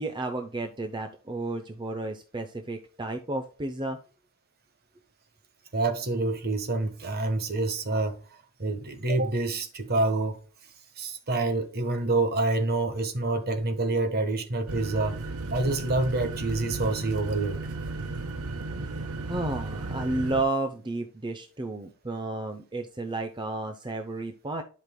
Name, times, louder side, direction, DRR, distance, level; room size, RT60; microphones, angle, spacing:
voice 1, 0.0-4.0 19.3-24.6, right 2 dB, 20° right, 0.6 m, -32 dB
voice 2, 5.7-8.2 8.6-10.4 11.0-15.2 15.5-17.6, right 2 dB, 45° right, 1.3 m, -27 dB
sound 1, 14.7-20.4, right 3 dB, 85° right, 0.9 m, -35 dB
11.5 x 5.2 x 2.2 m
head